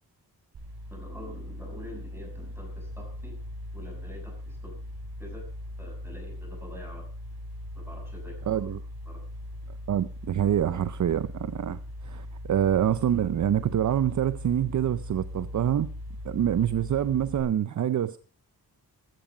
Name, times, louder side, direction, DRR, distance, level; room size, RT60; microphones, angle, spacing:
sound 1, 0.5-17.4, left 1 dB, 75° right, 6.3 m, -40 dB
voice 1, 0.9-3.3 3.7-4.8 5.2-5.4 5.8-7.0 7.7-8.7 9.1-9.2, equal, 5° right, 6.6 m, -45 dB
voice 2, 8.5-8.8 9.9-15.9 16.2-18.2, right 10 dB, 50° right, 0.6 m, -26 dB
14.5 x 13.0 x 5.0 m
wide cardioid pair, 155°, 37 cm